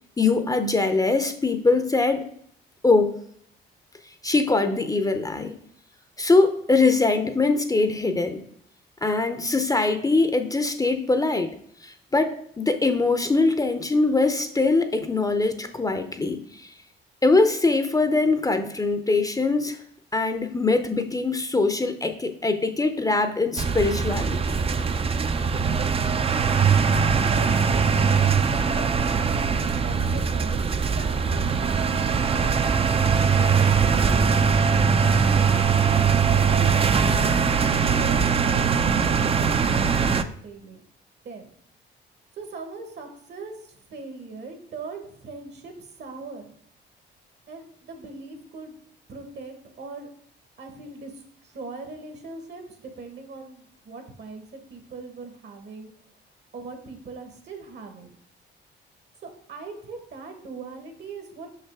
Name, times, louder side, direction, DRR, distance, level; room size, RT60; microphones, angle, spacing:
voice 1, 0.2-2.3 2.8-3.1 4.2-5.5 6.2-8.4 9.0-11.5 11.8-16.7 17.2-19.8 20.1-24.6, left 3 dB, 20° left, 0.6 m, -22 dB
sound 1, 23.6-40.2, right 6 dB, 30° right, 0.4 m, -21 dB
voice 2, 27.9-28.4 28.7-31.7 32.5-36.1 36.5-40.8 41.2-41.5 42.3-46.5 47.5-48.8 49.1-50.1 50.6-55.9 56.5-58.1 59.2-61.5, right 3 dB, 60° right, 1.5 m, -40 dB
5.9 x 5.6 x 3.5 m
cardioid pair, 90°, 20 cm